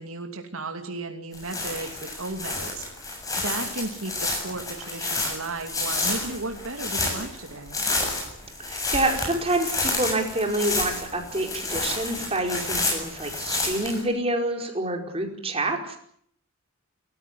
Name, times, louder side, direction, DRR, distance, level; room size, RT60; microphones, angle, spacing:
voice 1, 0.0-7.8, right 2 dB, 90° right, 4 dB, 2.8 m, -35 dB
sound 1, 1.3-14.0, left 2 dB, 15° left, 7.4 m, -30 dB
voice 2, 8.6-16.0, right 1 dB, 30° right, 3 dB, 4.9 m, -27 dB
28.5 x 15.5 x 9.5 m, 0.65 s
head